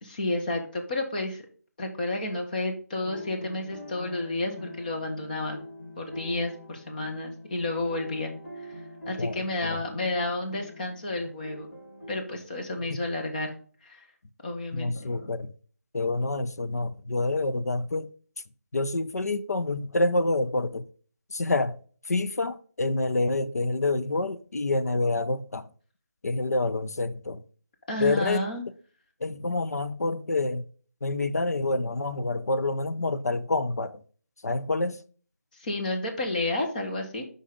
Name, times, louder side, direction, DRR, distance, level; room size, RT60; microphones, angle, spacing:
voice 1, 0.0-1.4 1.8-5.6 6.0-8.3 8.6-8.8 9.1-11.7 12.1-13.5 13.8-14.0 14.4-15.3 27.9-28.7 35.6-37.2, left 2 dB, 30° left, 1.6 m, -31 dB
sound 1, 3.0-12.2, left 1 dB, 60° left, 3.3 m, -43 dB
voice 2, 9.2-9.8 12.9-13.0 14.7-15.5 15.9-18.1 18.7-20.8 21.3-21.8 22.1-25.7 26.2-27.4 28.0-28.5 29.2-30.6 31.0-34.0 34.4-35.0, left 2 dB, 80° left, 0.8 m, -27 dB
7.2 x 5.6 x 3.7 m
figure-of-eight pair, 170°, 9 cm